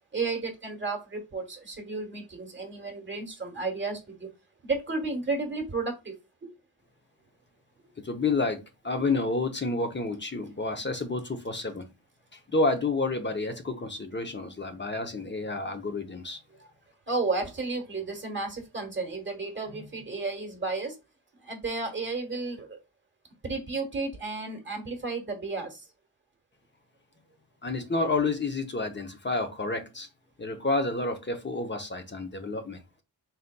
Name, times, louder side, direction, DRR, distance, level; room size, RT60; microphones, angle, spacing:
voice 1, 0.1-4.3 4.6-6.2 17.1-21.0 21.4-22.8 23.4-25.9, right 3 dB, 30° right, 1.3 m, -32 dB
voice 2, 8.0-11.8 12.5-16.4 27.6-30.1 30.4-32.8, left 3 dB, 30° left, 0.7 m, -29 dB
4.0 x 3.9 x 2.2 m
wide cardioid pair, 110°, 39 cm